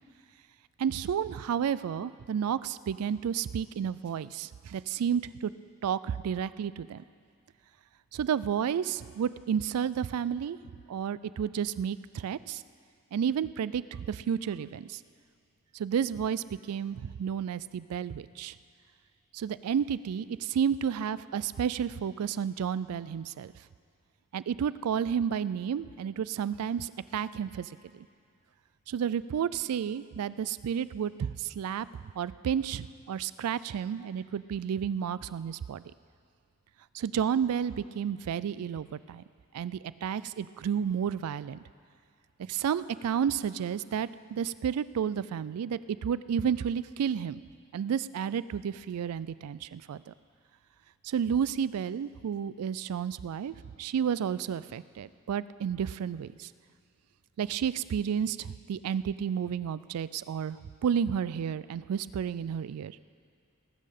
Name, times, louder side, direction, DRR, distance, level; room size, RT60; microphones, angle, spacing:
voice 1, 0.8-5.5 5.8-7.0 8.1-10.6 10.9-12.6 13.1-15.0 15.7-18.5 19.3-23.5 24.3-28.1 28.9-35.8 36.9-39.2 39.5-41.6 42.5-47.4 47.7-50.1 51.0-56.5 57.4-63.0, right 8 dB, 80° right, 17 dB, 0.3 m, -31 dB
19.0 x 7.6 x 6.5 m, 2.2 s
head